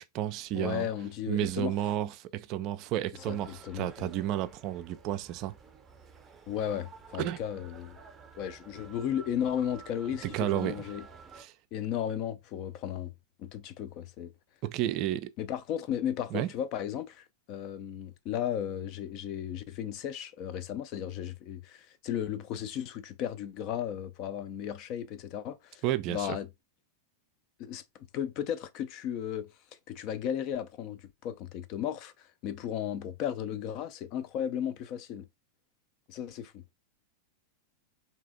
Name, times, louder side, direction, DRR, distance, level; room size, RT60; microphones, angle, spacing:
voice 1, 0.0-0.9 1.3-5.5 7.2-7.4 10.2-10.8 11.4-11.5 14.6-15.3 16.3-16.5 25.8-26.4, right 12 dB, 40° right, 0.3 m, -32 dB
voice 2, 0.5-1.7 3.3-4.1 6.5-8.0 8.3-11.0 11.7-13.1 13.4-14.3 15.4-26.5 27.6-27.8 28.1-29.5 29.9-35.3 36.1-36.6, left 9 dB, 40° left, 0.4 m, -35 dB
sound 1, 3.2-11.4, right 5 dB, 20° right, 0.7 m, -52 dB
3.3 x 2.8 x 3.7 m
figure-of-eight pair, 90°, 0 cm